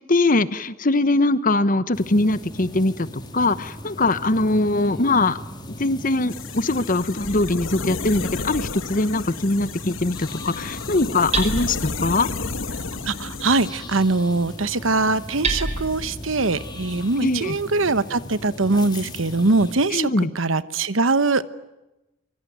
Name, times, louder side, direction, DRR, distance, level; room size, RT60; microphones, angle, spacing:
voice 1, 0.1-3.1 3.3-5.4 5.8-12.3 17.2-17.6 19.9-20.3, left 2 dB, 40° left, 15 dB, 1.1 m, -21 dB
sound 1, 1.9-19.7, left 1 dB, 20° left, 3.0 m, -39 dB
sound 2, 6.3-13.7, left 4 dB, 75° left, 1.4 m, -32 dB
Hammer, 7.2-17.0, right 2 dB, 35° right, 4.5 m, -34 dB
voice 2, 13.1-21.5, right 3 dB, 75° right, 15 dB, 1.1 m, -22 dB
25.0 x 24.0 x 9.3 m, 0.97 s
head